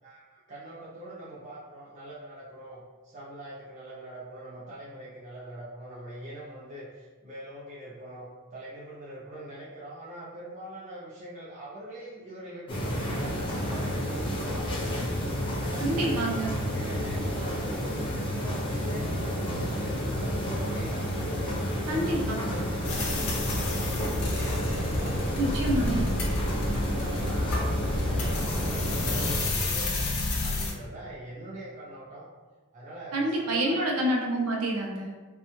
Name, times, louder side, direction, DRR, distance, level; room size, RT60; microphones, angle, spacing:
voice 1, 0.0-15.1 15.3-16.2 16.7-25.8 26.5-27.6 28.0-30.0 30.4-32.3 32.7-33.9, right 1 dB, 35° right, -8 dB, 0.5 m, -43 dB
sound 1, 12.7-29.4, equal, 20° left, 0.4 m, -30 dB
voice 2, 15.8-16.5 21.9-22.4 25.4-26.1 33.1-35.1, right 1 dB, 80° right, -1 dB, 0.6 m, -27 dB
sound 2, 22.8-30.7, left 2 dB, 75° left, 0.6 m, -30 dB
2.5 x 2.2 x 2.9 m, 1.3 s
head